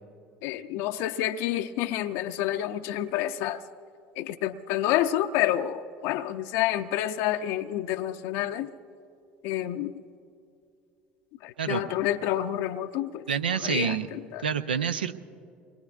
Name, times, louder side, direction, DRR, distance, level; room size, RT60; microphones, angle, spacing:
voice 1, 0.4-3.6 4.2-8.7 9.4-9.9 11.4-13.3 13.6-14.4, left 12 dB, 65° left, 7 dB, 0.5 m, -29 dB
voice 2, 13.3-14.1 14.4-15.2, right 7 dB, 90° right, 11 dB, 0.5 m, -27 dB
26.5 x 22.0 x 2.4 m, 2.6 s
hypercardioid pair, 70°, 5 cm